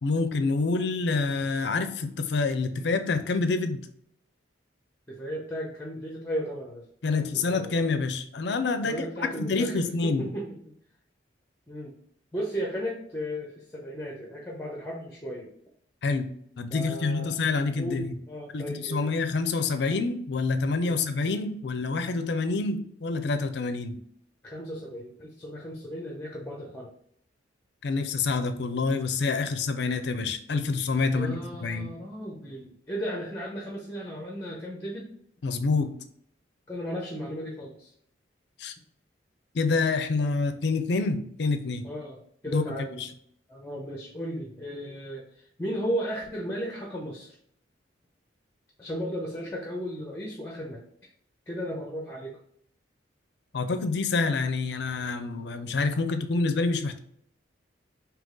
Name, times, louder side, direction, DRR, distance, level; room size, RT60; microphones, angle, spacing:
voice 1, 0.0-3.9 7.0-9.1 9.4-10.3 16.0-18.1 18.5-24.0 27.8-31.9 35.4-35.9 38.6-38.8 39.5-41.8 42.5-42.6 42.9-43.1 53.5-57.0, left 3 dB, 60° left, 9 dB, 0.4 m, -27 dB
voice 2, 5.1-6.8 7.1-7.7 8.8-10.7 11.7-11.9 12.3-15.5 16.7-17.4 17.8-19.1 20.8-21.0 24.4-26.9 31.0-35.1 36.7-37.9 41.8-42.2 42.4-43.1 43.5-47.4 48.8-50.8 51.5-52.4, equal, 10° left, -1 dB, 0.6 m, -35 dB
3.8 x 2.8 x 3.7 m, 0.67 s
head